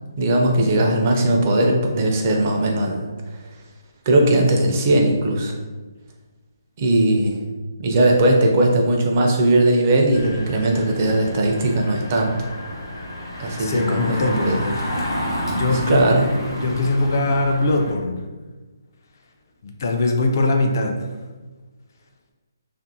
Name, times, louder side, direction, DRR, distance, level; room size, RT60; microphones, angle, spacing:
voice 1, 0.2-3.1 4.1-5.5 6.8-7.4 7.8-12.3 13.4-14.6 15.9-16.3, right 1 dB, 35° right, 1 dB, 0.4 m, -18 dB
Engine, 10.1-17.9, equal, 80° left, 0.9 m, -30 dB
voice 2, 13.6-14.5 15.5-16.0 16.6-18.2 19.6-21.1, left 2 dB, 50° left, 3 dB, 0.4 m, -21 dB
2.6 x 2.5 x 2.6 m, 1.3 s
hypercardioid pair, 160°, 2 cm